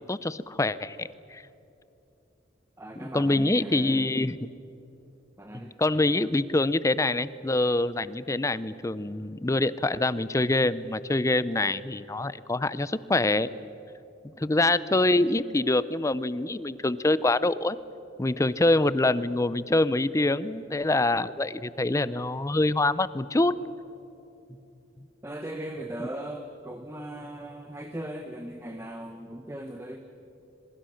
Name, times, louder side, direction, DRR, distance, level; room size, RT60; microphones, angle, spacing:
voice 1, 0.0-1.4 3.0-4.5 5.5-13.5 14.4-17.8 18.2-23.6, left 2 dB, 15° left, 16 dB, 0.5 m, -25 dB
voice 2, 2.8-4.1 5.4-5.8 14.3-14.4 24.5-24.6 25.2-30.0, right 1 dB, 15° right, 5 dB, 1.0 m, -38 dB
26.5 x 22.5 x 6.5 m, 2.9 s
head